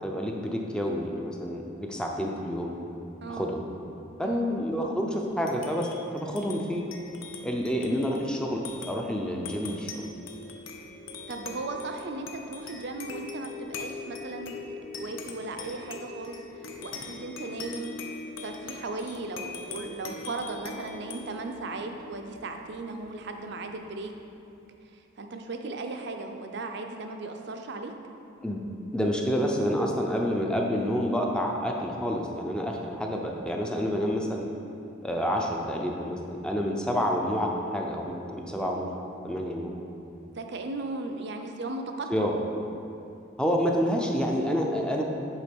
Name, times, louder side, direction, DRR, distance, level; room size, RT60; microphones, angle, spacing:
voice 1, 0.0-2.7 3.3-3.6 4.2-5.9 6.1-6.8 7.4-10.0 28.4-28.6 28.9-34.5 35.0-38.9 39.2-39.7 42.1-42.4 43.4-45.0, equal, 5° left, 0 dB, 0.5 m, -28 dB
voice 2, 3.2-3.5 4.2-4.5 11.3-16.4 16.8-17.9 18.4-24.1 25.2-27.9 40.3-42.3, right 3 dB, 60° right, 4 dB, 0.6 m, -36 dB
sound 1, 5.2-24.1, left 4 dB, 80° left, 0.7 m, -42 dB
8.2 x 3.8 x 5.2 m, 2.8 s
head